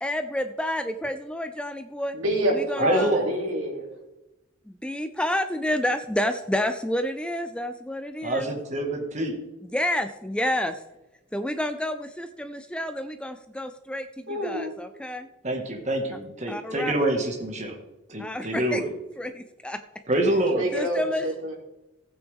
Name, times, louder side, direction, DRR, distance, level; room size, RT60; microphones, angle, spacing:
voice 1, 0.0-2.2 2.5-3.1 4.7-8.5 9.6-10.8 11.3-15.3 16.5-16.9 18.2-18.8 19.2-19.8 20.7-21.2, left 1 dB, 5° left, 9 dB, 0.4 m, -29 dB
voice 2, 2.1-3.9 14.3-14.7 20.6-21.6, right 1 dB, 80° right, -1 dB, 3.0 m, -27 dB
voice 3, 2.8-3.3 8.2-9.3 15.4-17.8 18.1-18.8 20.1-20.7, right 1 dB, 35° right, 1 dB, 1.7 m, -26 dB
15.5 x 9.1 x 3.6 m, 0.99 s
head